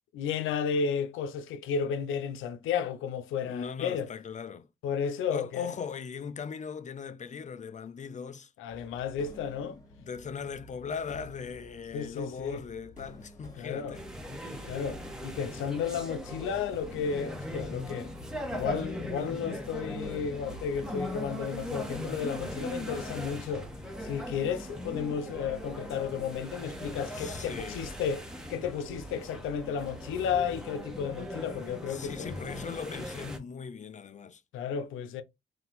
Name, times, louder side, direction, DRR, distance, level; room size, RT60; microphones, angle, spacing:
voice 1, 0.1-4.1 4.8-5.8 8.6-9.8 11.9-12.6 13.6-14.0 14.6-18.1 18.5-23.7 24.0-32.4 34.5-35.2, left 7 dB, 85° left, 0.6 m, -33 dB
voice 2, 3.4-4.7 5.3-8.5 9.6-14.1 14.4-14.7 22.8-23.2 27.1-27.8 31.9-34.4, left 6 dB, 35° left, 0.5 m, -39 dB
sound 1, 8.7-24.2, left 2 dB, 15° left, 1.7 m, -52 dB
sound 2, 13.9-33.4, equal, 5° right, 1.2 m, -39 dB
3.9 x 2.6 x 3.9 m
cardioid pair, 90°, 20 cm